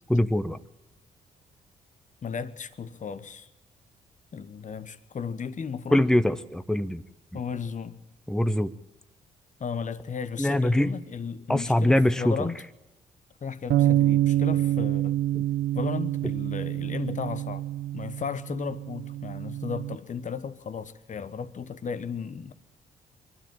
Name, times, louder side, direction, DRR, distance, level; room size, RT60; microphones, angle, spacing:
voice 1, 0.1-0.6 5.9-7.0 8.3-8.7 10.4-11.0 11.5-12.5 15.3-15.4, left 1 dB, 5° left, 0.9 m, -23 dB
voice 2, 2.2-3.5 4.3-6.0 7.3-8.0 9.6-12.6 13.4-15.2 15.7-17.7 17.9-22.5, left 6 dB, 40° left, 1.1 m, -35 dB
sound 1, 13.7-20.0, right 14 dB, 60° right, 0.7 m, -26 dB
23.5 x 12.5 x 8.9 m
figure-of-eight pair, 40°, 20 cm